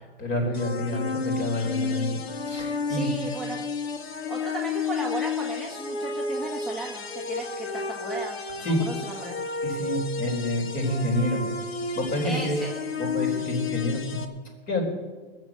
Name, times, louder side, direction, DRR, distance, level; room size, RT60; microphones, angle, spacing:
voice 1, 0.2-2.2 2.4-3.1 8.6-8.8 9.6-11.4 11.9-12.6 13.0-14.2 14.7-14.8, left 1 dB, 30° left, 2 dB, 4.2 m, -28 dB
sound 1, 0.5-14.2, left 4 dB, 90° left, 1.8 m, -32 dB
voice 2, 2.9-3.7 4.3-9.4 12.2-12.7, right 2 dB, ahead, -2 dB, 1.1 m, -36 dB
20.0 x 7.5 x 8.5 m, 1.3 s
hypercardioid pair, 155°, 30 cm